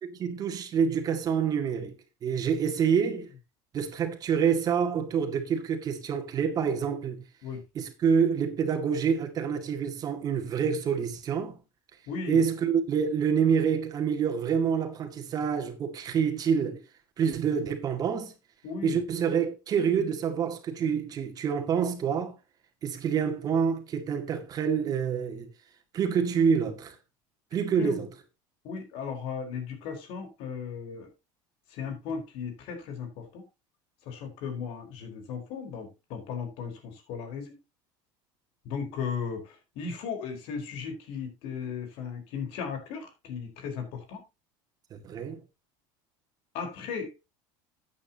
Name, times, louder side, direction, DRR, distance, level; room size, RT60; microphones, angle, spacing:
voice 1, 0.0-1.9 2.2-3.3 3.7-7.2 7.7-11.6 12.3-16.8 17.2-18.3 18.8-22.4 22.8-25.5 25.9-27.0 27.5-28.1 44.9-45.4, right 7 dB, 35° right, 2.1 m, -27 dB
voice 2, 12.1-12.4 18.6-19.0 27.8-28.0 28.6-31.1 31.7-33.4 34.1-37.6 38.6-44.2 46.5-47.2, left 6 dB, 60° left, 4.5 m, -36 dB
13.0 x 8.8 x 2.9 m
supercardioid pair, 125°, 11 cm